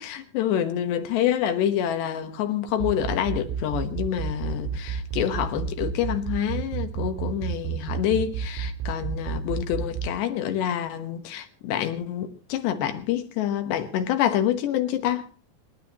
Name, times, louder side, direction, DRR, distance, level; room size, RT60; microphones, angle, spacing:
voice 1, 0.0-15.3, left 10 dB, 75° left, 3.3 m, -27 dB
sound 1, 2.7-10.1, right 8 dB, 85° right, 4.1 m, -29 dB
27.5 x 11.0 x 2.9 m
omnidirectional pair, 5.1 m